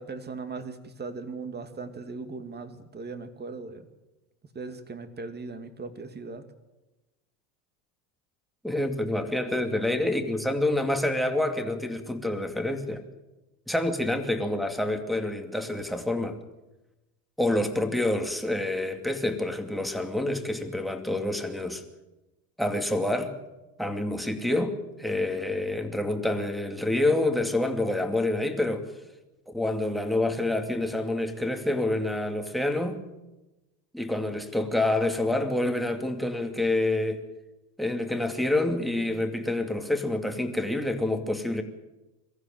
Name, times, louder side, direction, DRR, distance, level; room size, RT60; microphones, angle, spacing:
voice 1, 0.0-3.9 4.5-6.5, right 4 dB, 20° right, 8 dB, 2.5 m, -38 dB
voice 2, 8.6-13.0 13.7-16.4 17.4-21.8 22.6-23.3 23.8-28.9 29.5-33.0 33.9-37.2 37.8-41.6, left 1 dB, ahead, 4 dB, 2.5 m, -27 dB
22.5 x 15.0 x 9.2 m, 1.0 s
supercardioid pair, 100°, 46 cm